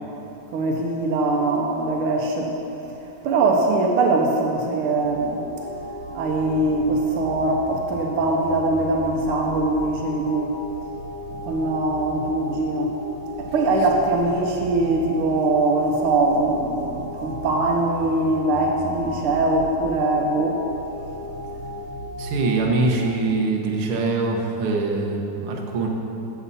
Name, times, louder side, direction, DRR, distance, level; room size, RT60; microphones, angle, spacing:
voice 1, 0.5-2.5 3.2-5.4 6.1-10.6 11.4-12.9 13.4-20.6, right 2 dB, 75° right, 0 dB, 1.2 m, -22 dB
sound 1, 4.9-23.1, equal, 30° right, 3.1 m, -35 dB
voice 2, 22.2-25.9, right 3 dB, 60° right, 0 dB, 1.6 m, -23 dB
16.5 x 7.1 x 4.1 m, 2.9 s
omnidirectional pair, 3.4 m